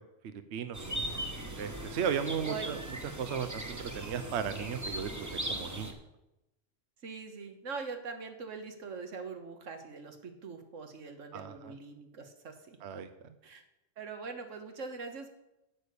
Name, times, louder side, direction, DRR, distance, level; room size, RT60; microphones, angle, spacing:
voice 1, 0.2-0.8 1.6-2.8 3.2-5.9 11.3-11.7 12.8-13.1, right 7 dB, 65° right, 10 dB, 0.9 m, -35 dB
sound 1, 0.7-5.9, right 1 dB, 15° right, 1.1 m, -39 dB
voice 2, 0.8-1.3 2.4-2.8 7.0-12.8 13.4-13.6 14.0-15.3, right 4 dB, 90° right, 6 dB, 1.7 m, -43 dB
8.7 x 8.6 x 6.7 m, 0.92 s
omnidirectional pair, 1.3 m